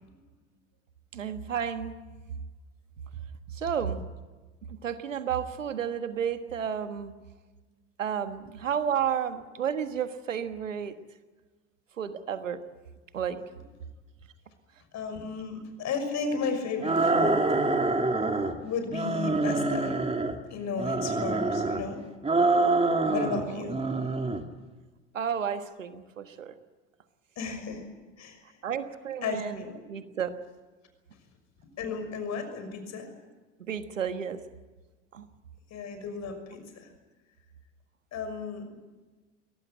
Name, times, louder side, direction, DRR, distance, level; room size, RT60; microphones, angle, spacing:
voice 1, 1.1-2.0 3.6-4.0 4.7-7.1 8.0-10.9 12.0-12.6 13.1-13.4 23.0-23.7 25.1-26.5 28.6-29.6 29.9-30.3 33.7-34.4 35.1-35.2, right 8 dB, 85° right, 10 dB, 1.5 m, -32 dB
voice 2, 14.9-17.3 18.6-20.0 20.5-22.0 23.1-23.8 27.4-27.8 28.2-28.4 29.2-29.8 31.8-33.1 35.7-36.6 38.1-38.6, left 5 dB, 45° left, 7 dB, 6.1 m, -34 dB
sound 1, 16.8-18.6 18.9-20.4 20.8-21.8 22.2-23.4 23.7-24.4, right 3 dB, 15° right, 2.7 m, -26 dB
22.5 x 18.0 x 9.1 m, 1.3 s
hypercardioid pair, 70°, 37 cm